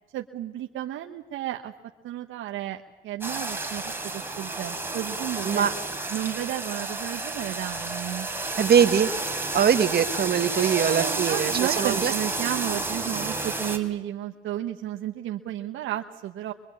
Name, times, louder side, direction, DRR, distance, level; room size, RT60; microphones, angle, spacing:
voice 1, 0.1-1.7 2.0-5.7 6.1-8.3 10.5-16.5, right 12 dB, 85° right, 3 dB, 1.2 m, -33 dB
sound 1, 3.2-13.8, right 2 dB, 10° right, 3.7 m, -31 dB
voice 2, 8.6-9.1 9.5-12.1, right 8 dB, 55° right, 10 dB, 1.5 m, -22 dB
24.5 x 23.5 x 8.6 m, 1.0 s
cardioid pair, 90°, 20 cm